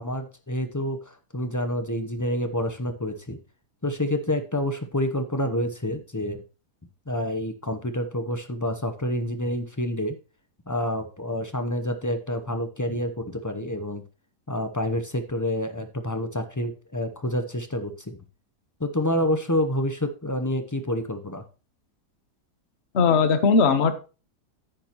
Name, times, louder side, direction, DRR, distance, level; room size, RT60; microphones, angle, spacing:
voice 1, 0.0-3.4 3.8-6.4 7.1-10.2 10.7-14.0 14.5-18.2 18.8-21.4, left 1 dB, 25° left, 8 dB, 0.4 m, -28 dB
voice 2, 22.9-23.9, left 5 dB, 45° left, 9 dB, 1.2 m, -19 dB
10.0 x 8.9 x 3.0 m, 0.32 s
omnidirectional pair, 1.8 m